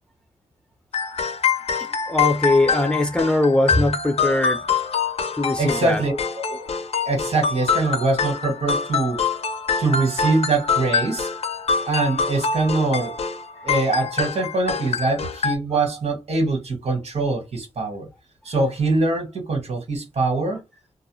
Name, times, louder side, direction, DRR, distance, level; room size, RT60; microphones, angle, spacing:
sound 1, 0.9-15.6, left 5 dB, 65° left, 0.4 m, -25 dB
voice 1, 2.1-4.6 5.4-6.0, left 2 dB, 10° left, 0.5 m, -20 dB
voice 2, 5.6-6.1 6.5-6.6 7.0-9.2 9.8-11.3 11.9-13.2 13.6-18.1 18.4-20.6, right 3 dB, 75° right, 1.4 m, -23 dB
2.4 x 2.1 x 3.0 m
wide cardioid pair, 80°, 11 cm